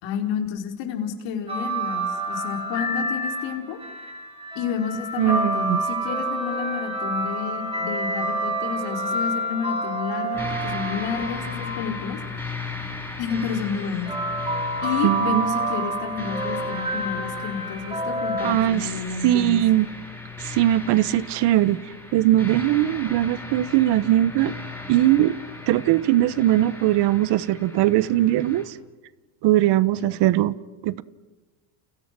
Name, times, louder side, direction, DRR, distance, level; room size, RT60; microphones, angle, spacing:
voice 1, 0.0-3.8 4.5-12.2 13.2-14.1 14.8-19.6 30.0-30.1, left 7 dB, 70° left, 4.9 m, -30 dB
Hatching Ambient, 1.5-12.4 13.3-18.5, right 1 dB, 10° right, 6.0 m, -28 dB
voice 2, 5.2-5.8 15.0-15.4 18.4-18.9 19.2-19.9 20.4-21.8 22.1-24.5 24.9-25.3 25.7-28.8 29.4-30.5 30.8-31.0, right 14 dB, 65° right, 1.3 m, -20 dB
sound 1, 10.3-28.6, left 3 dB, 5° left, 7.9 m, -37 dB
30.0 x 30.0 x 6.2 m
supercardioid pair, 110°, 45 cm